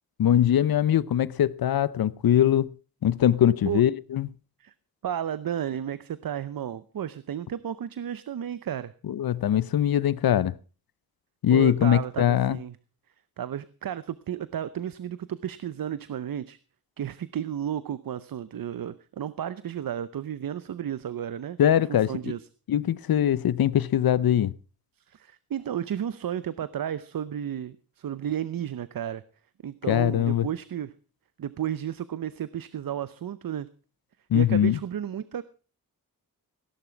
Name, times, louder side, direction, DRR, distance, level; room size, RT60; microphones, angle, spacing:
voice 1, 0.2-2.7 3.0-4.3 9.1-10.6 11.4-12.6 21.6-22.3 22.7-24.5 29.9-30.5 34.3-34.8, left 10 dB, 85° left, 0.6 m, -22 dB
voice 2, 5.0-8.9 11.5-12.8 13.4-16.6 17.0-21.6 21.9-22.4 25.0-29.2 29.6-30.9 31.4-33.7 34.3-35.4, right 9 dB, 75° right, 0.7 m, -33 dB
17.5 x 11.0 x 4.5 m
wide cardioid pair, 120°, 35 cm